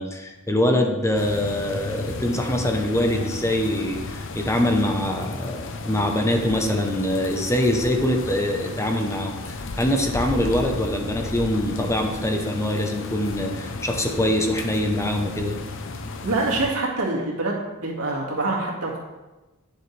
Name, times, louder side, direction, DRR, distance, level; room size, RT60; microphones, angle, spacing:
voice 1, 0.0-9.3 9.8-15.6, left 1 dB, 15° left, 3 dB, 0.8 m, -24 dB
sound 1, 1.1-16.7, left 3 dB, 60° left, 0.7 m, -34 dB
voice 2, 16.2-17.5 17.8-19.0, right 2 dB, 90° right, -3 dB, 2.1 m, -25 dB
9.5 x 7.7 x 3.3 m, 1.1 s
head